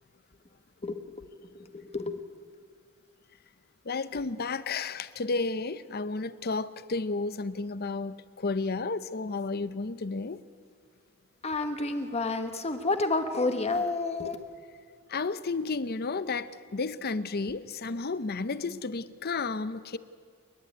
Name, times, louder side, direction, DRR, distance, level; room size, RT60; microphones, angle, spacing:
voice 1, 0.8-2.2 11.4-14.4, left 3 dB, 30° left, 1.3 m, -30 dB
voice 2, 3.9-10.4 15.1-20.0, left 3 dB, 50° left, 0.7 m, -32 dB
28.5 x 11.0 x 9.5 m
head